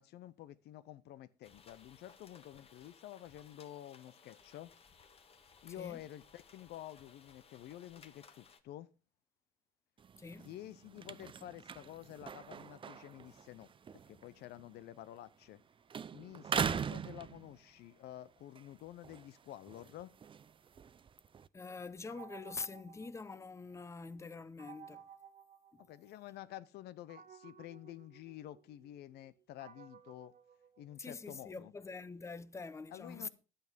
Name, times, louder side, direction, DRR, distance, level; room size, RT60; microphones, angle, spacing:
voice 1, 0.0-4.7 5.6-8.9 10.4-13.7 14.1-15.6 16.1-20.1 25.8-30.3 30.8-31.7 32.9-33.3, left 13 dB, 75° left, 0.8 m, -50 dB
sound 1, 1.4-8.6, left 5 dB, 35° left, 1.5 m, -61 dB
sound 2, 10.0-15.6 15.9-17.9 18.4-21.5, right 7 dB, 30° right, 0.5 m, -42 dB
voice 2, 10.2-10.5 21.5-25.0 25.7-25.8 31.0-33.3, left 4 dB, 15° left, 0.7 m, -45 dB
sound 3, 22.1-23.9 24.6-26.4 27.1-31.4, right 8 dB, 55° right, 1.9 m, -57 dB
11.0 x 9.0 x 5.2 m
cardioid pair, 110°, 17 cm